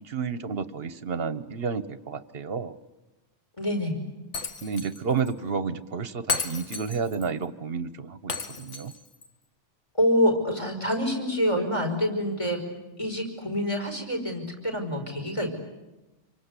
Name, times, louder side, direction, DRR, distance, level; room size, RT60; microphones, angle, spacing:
voice 1, 0.0-2.8 4.6-8.9, right 5 dB, 55° right, 13 dB, 1.2 m, -31 dB
voice 2, 3.6-4.0 10.0-12.6 13.0-15.5, equal, 25° left, 4 dB, 5.2 m, -26 dB
Shatter, 4.3-5.0 5.3-5.4 6.3-7.3 8.3-9.3, left 5 dB, 80° left, 1.8 m, -33 dB
27.0 x 24.5 x 8.3 m, 1.1 s
omnidirectional pair, 1.2 m